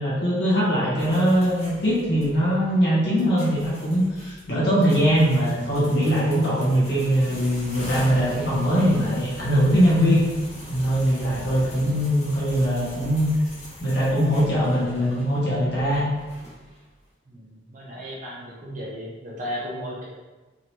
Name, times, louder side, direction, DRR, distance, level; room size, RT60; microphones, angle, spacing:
voice 1, 0.0-10.2 10.7-13.3 13.8-16.0, equal, 60° left, -8 dB, 1.3 m, -21 dB
sound 1, 1.0-16.9, equal, 35° left, 1.0 m, -42 dB
voice 2, 17.3-20.0, equal, 40° right, -5 dB, 0.7 m, -35 dB
3.7 x 3.2 x 2.9 m, 1.2 s
head